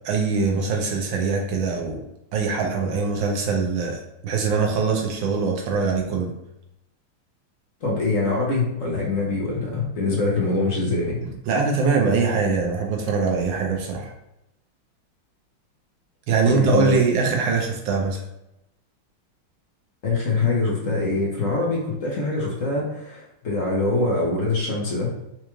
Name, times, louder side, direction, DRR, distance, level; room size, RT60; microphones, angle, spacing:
voice 1, 0.0-2.0 2.3-6.3 11.5-14.1 16.3-18.2, right 4 dB, 75° right, 1 dB, 1.4 m, -22 dB
voice 2, 7.8-11.2 16.4-17.0 20.0-25.2, left 3 dB, 50° left, -4 dB, 1.0 m, -24 dB
4.5 x 2.4 x 3.0 m, 0.86 s
omnidirectional pair, 2.2 m